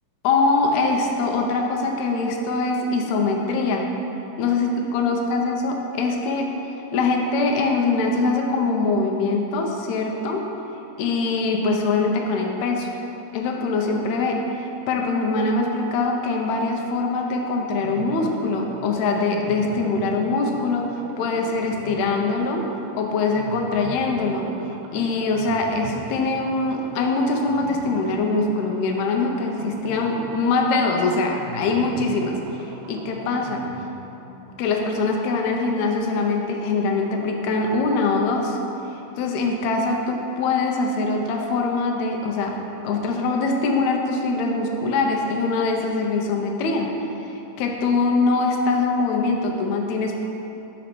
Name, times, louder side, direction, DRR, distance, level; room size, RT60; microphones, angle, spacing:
voice 1, 0.2-3.9 4.4-6.5 6.9-10.5 11.0-12.9 13.3-20.9 21.2-22.7 23.0-24.5 24.9-33.6 34.6-38.6 39.2-42.6 42.8-46.9 47.3-50.3, left 3 dB, 80° left, 1 dB, 1.7 m, -23 dB
sound 1, 17.8-36.5 36.7-36.8 37.1-37.2, right 4 dB, 90° right, 2.2 m, -40 dB
5.2 x 5.1 x 4.4 m, 2.9 s
omnidirectional pair, 3.8 m